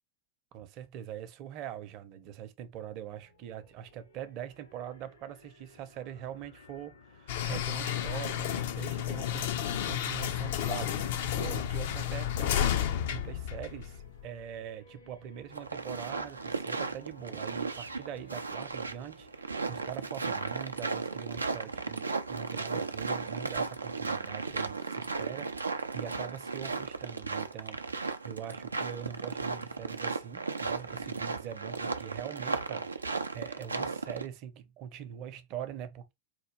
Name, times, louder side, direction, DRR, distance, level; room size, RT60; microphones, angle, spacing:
voice 1, 0.5-36.1, right 9 dB, 40° right, 0.6 m, -43 dB
sound 1, 3.1-20.0, left 3 dB, 75° left, 1.4 m, -57 dB
sound 2, 7.3-14.2, left 10 dB, 55° left, 0.5 m, -32 dB
sound 3, 15.5-34.2, right 4 dB, 80° right, 0.4 m, -35 dB
4.4 x 2.3 x 3.1 m
figure-of-eight pair, 90°, 0 cm